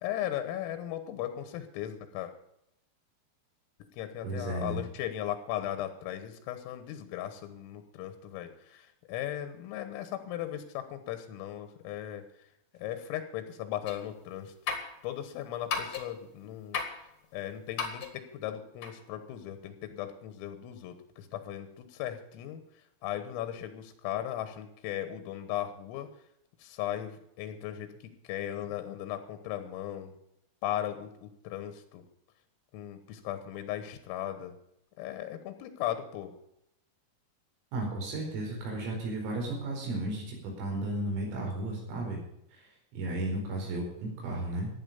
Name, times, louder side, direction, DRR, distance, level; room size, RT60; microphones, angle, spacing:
voice 1, 0.0-2.3 3.9-14.5 15.0-26.1 26.6-30.2 30.6-32.0 32.7-34.6 35.0-36.4, left 12 dB, 85° left, 9 dB, 3.9 m, -37 dB
voice 2, 4.2-4.8 37.7-42.2 42.5-44.7, right 2 dB, 85° right, 0 dB, 7.4 m, -34 dB
sound 1, 13.9-14.1 14.7-15.0 15.7-16.2 16.7-17.0 17.8-18.1 18.8-18.9, left 6 dB, 50° left, 2.1 m, -34 dB
15.0 x 10.0 x 7.0 m, 0.78 s
omnidirectional pair, 5.9 m